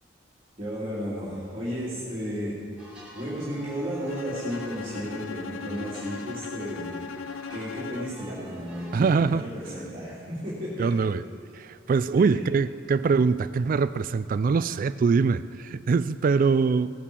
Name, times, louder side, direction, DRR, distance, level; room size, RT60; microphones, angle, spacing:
voice 1, 0.6-2.5 3.1-6.9 7.5-11.0 12.2-12.3, equal, 30° right, -9 dB, 3.0 m, -33 dB
sound 1, 2.8-9.0, equal, 5° right, 3.0 m, -48 dB
Bowed string instrument, 4.1-8.3, left 6 dB, 85° left, 0.4 m, -38 dB
voice 2, 8.9-9.4 10.8-11.2 11.5-16.9, right 5 dB, 45° right, 14 dB, 0.3 m, -23 dB
17.5 x 8.6 x 6.9 m, 2.4 s
head